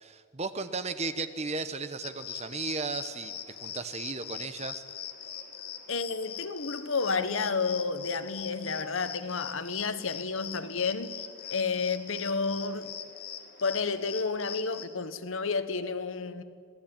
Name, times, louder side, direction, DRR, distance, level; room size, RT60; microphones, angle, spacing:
voice 1, 0.0-3.3 3.6-4.8, right 3 dB, 30° right, 1.0 m, -35 dB
sound 1, 2.0-14.9, left 9 dB, 45° left, 2.1 m, -42 dB
voice 2, 5.9-11.1 11.5-12.9 13.6-16.4, left 4 dB, 65° left, 1.3 m, -31 dB
26.5 x 18.0 x 9.0 m
head